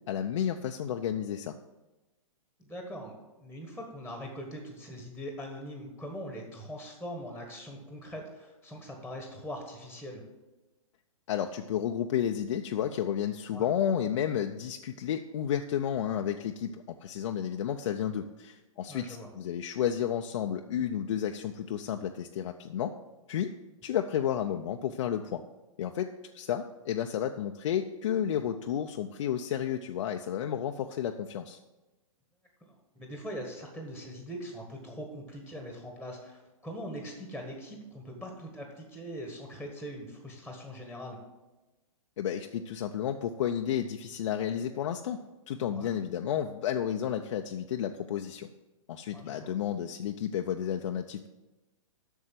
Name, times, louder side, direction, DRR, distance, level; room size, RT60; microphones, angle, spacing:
voice 1, 0.1-1.5 11.3-23.0 23.3-23.5 23.8-25.4 25.8-31.6 42.2-45.2 45.5-48.5 48.9-51.3, left 9 dB, 60° left, 4 dB, 0.6 m, -32 dB
voice 2, 2.6-3.1 3.4-10.2 13.5-13.7 18.9-19.3 32.9-41.2 45.7-45.9 49.1-49.5, equal, 5° right, 2 dB, 1.4 m, -42 dB
8.1 x 6.4 x 7.6 m, 1.1 s
hypercardioid pair, 135°, 18 cm